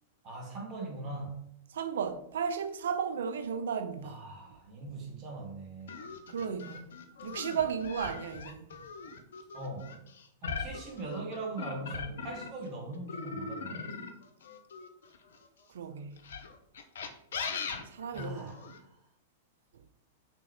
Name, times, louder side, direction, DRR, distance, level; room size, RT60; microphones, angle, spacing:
voice 1, 0.2-1.5 4.0-6.0 9.5-9.9 10.4-13.9 18.1-18.9, right 2 dB, 35° right, 0.9 m, -41 dB
voice 2, 1.7-4.3 6.3-6.8 7.2-8.7 15.7-16.2 17.9-18.5, right 7 dB, 65° right, 0.3 m, -34 dB
sound 1, 5.9-12.7 13.1-15.5 16.2-18.8, left 5 dB, 65° left, 0.4 m, -40 dB
3.5 x 2.8 x 3.3 m
figure-of-eight pair, 100°, 0 cm